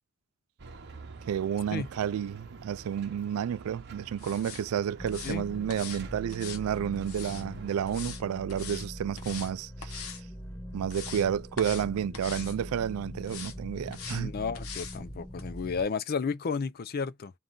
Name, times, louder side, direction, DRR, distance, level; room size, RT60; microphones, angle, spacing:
sound 1, 0.6-7.9, right 4 dB, 50° right, 0.9 m, -48 dB
voice 1, 1.3-10.2 10.7-14.3, right 9 dB, 80° right, 0.3 m, -31 dB
sound 2, 4.2-4.6 5.1-5.4 5.7-6.0 6.3-7.4 7.9-8.2 8.5-8.9 9.2-9.5 9.8-10.2 10.6-11.3 11.6-11.9 12.1-12.6 13.2-13.5 13.9-14.2 14.5-15.0 15.4-15.5, left 7 dB, 80° left, 1.0 m, -42 dB
sound 3, 5.0-15.8, equal, 10° left, 0.8 m, -42 dB
voice 2, 14.1-17.3, left 5 dB, 45° left, 0.4 m, -32 dB
3.8 x 2.6 x 3.6 m
head